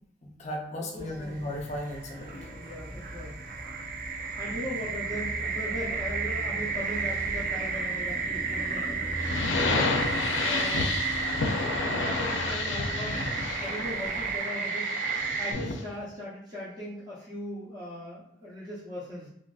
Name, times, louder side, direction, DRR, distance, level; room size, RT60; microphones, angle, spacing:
voice 1, 0.2-2.4, left 1 dB, 35° left, 1 dB, 0.6 m, -36 dB
voice 2, 0.9-1.5 2.6-3.4 4.4-9.0 9.6-9.9 10.4-11.0 11.8-13.2 13.6-15.0 15.4-19.3, left 1 dB, 20° right, -9 dB, 0.7 m, -39 dB
sound 1, 1.0-14.4, equal, 90° right, 1.4 m, -40 dB
sound 2, 1.5-15.5, right 5 dB, 45° right, 0.3 m, -33 dB
sound 3, 9.2-15.9, left 3 dB, 80° left, 0.4 m, -31 dB
3.3 x 2.5 x 2.3 m, 0.75 s
head